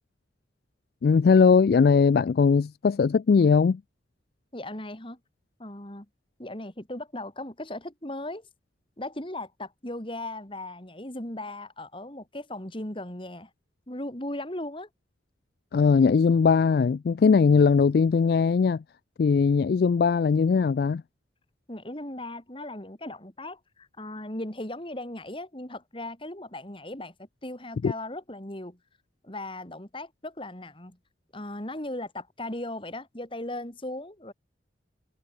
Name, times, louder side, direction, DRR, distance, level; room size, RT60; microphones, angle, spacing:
voice 1, 1.0-3.8 15.7-18.8 19.2-21.0 27.8-27.9, left 5 dB, 60° left, 0.3 m, -20 dB
voice 2, 4.5-5.2 5.6-6.1 6.4-8.4 9.0-13.5 13.9-14.9 21.7-27.1 27.4-28.8 29.2-31.0 31.3-34.3, left 1 dB, 30° left, 3.0 m, -37 dB
head